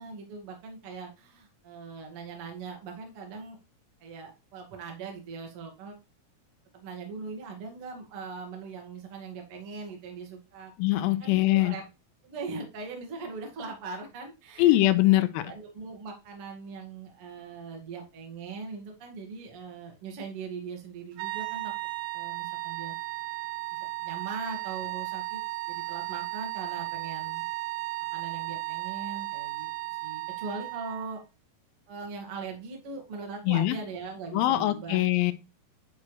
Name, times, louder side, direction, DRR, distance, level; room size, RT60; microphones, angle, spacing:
voice 1, 0.0-3.6 4.0-6.0 6.7-10.7 11.2-11.8 12.2-14.8 15.1-21.7 22.1-23.0 23.7-25.4 25.7-27.4 28.1-31.2 31.9-35.3, right 4 dB, 45° right, 2 dB, 2.2 m, -40 dB
voice 2, 10.8-11.8 14.6-15.4 33.5-33.8 34.3-35.3, left 16 dB, 80° left, 10 dB, 2.4 m, -22 dB
sound 1, 21.2-31.2, right 22 dB, 90° right, 2.7 m, -35 dB
9.9 x 4.6 x 3.2 m, 0.28 s
omnidirectional pair, 4.3 m